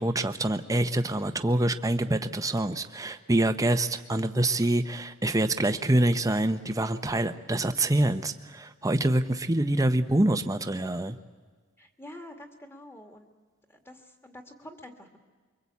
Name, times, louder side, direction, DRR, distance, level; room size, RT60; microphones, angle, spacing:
voice 1, 0.0-11.2, right 1 dB, 15° right, 8 dB, 0.8 m, -26 dB
voice 2, 11.8-13.3 13.7-15.2, left 1 dB, 10° left, 5 dB, 2.1 m, -47 dB
24.0 x 23.5 x 8.4 m, 1.4 s
head